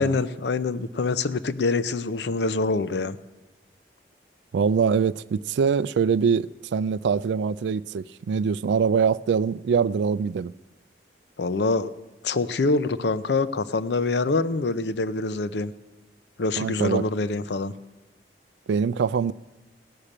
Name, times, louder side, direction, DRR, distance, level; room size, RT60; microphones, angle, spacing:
voice 1, 0.0-3.2 11.4-11.9 12.2-15.7 16.4-17.7, left 3 dB, 70° left, 0.5 m, -25 dB
voice 2, 4.5-10.5 16.6-17.0 18.7-19.3, right 6 dB, 75° right, 0.3 m, -23 dB
15.5 x 6.6 x 8.6 m
head